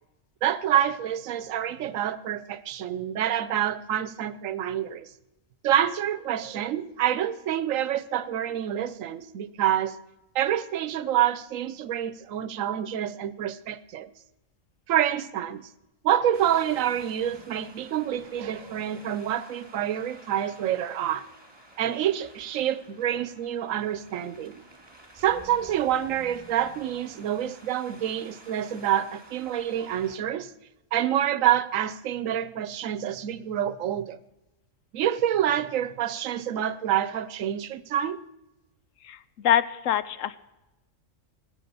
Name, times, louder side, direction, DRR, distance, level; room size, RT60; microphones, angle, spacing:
voice 1, 0.4-5.1 5.6-10.0 10.3-14.1 14.9-15.7 16.0-21.3 21.8-24.6 25.2-30.5 30.9-34.2 34.9-38.2, right 10 dB, 80° right, 1.1 m, -27 dB
Wind, 16.3-30.2, right 2 dB, 20° right, 1.8 m, -50 dB
voice 2, 39.4-40.4, left 10 dB, 80° left, 1.0 m, -24 dB
18.5 x 7.9 x 6.8 m
omnidirectional pair, 1.4 m